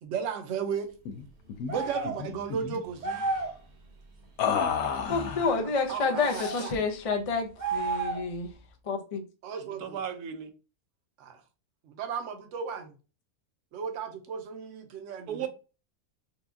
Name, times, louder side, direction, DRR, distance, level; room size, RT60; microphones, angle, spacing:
voice 1, 0.0-0.9 1.7-3.2 5.9-6.7 9.4-10.0 11.2-11.4 11.8-12.9 13.7-15.5, right 7 dB, 60° right, 0.9 m, -35 dB
sound 1, 1.1-1.2 1.5-1.7 2.0-2.8 4.4-5.6 6.3-6.9, left 7 dB, 75° left, 1.1 m, -31 dB
sound 2, 1.7-2.2 3.0-3.6 6.1-6.6 7.6-8.4, right 3 dB, 45° right, 0.6 m, -32 dB
voice 2, 1.8-2.1 9.6-10.5 15.3-15.5, right 8 dB, 80° right, 1.1 m, -36 dB
voice 3, 5.1-8.5 8.9-9.2, left 4 dB, 55° left, 0.3 m, -29 dB
4.4 x 2.3 x 2.6 m
omnidirectional pair, 1.6 m